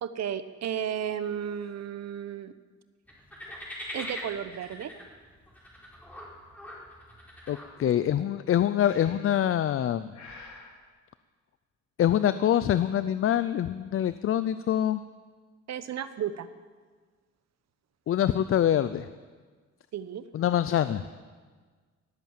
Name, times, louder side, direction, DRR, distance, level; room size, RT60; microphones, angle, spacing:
voice 1, 0.0-2.5 3.9-4.9 15.7-16.5 19.9-20.2, right 9 dB, 60° right, 12 dB, 1.0 m, -33 dB
sound 1, 3.1-8.1, left 1 dB, 5° left, 4.3 m, -42 dB
voice 2, 7.5-10.1 12.0-15.0 18.1-19.1 20.3-21.0, left 10 dB, 45° left, 13 dB, 0.5 m, -25 dB
Breathing, 8.8-9.4 10.1-10.7, left 3 dB, 65° left, 4.0 m, -48 dB
18.5 x 8.3 x 7.3 m, 1.5 s
cardioid pair, 90°, 30 cm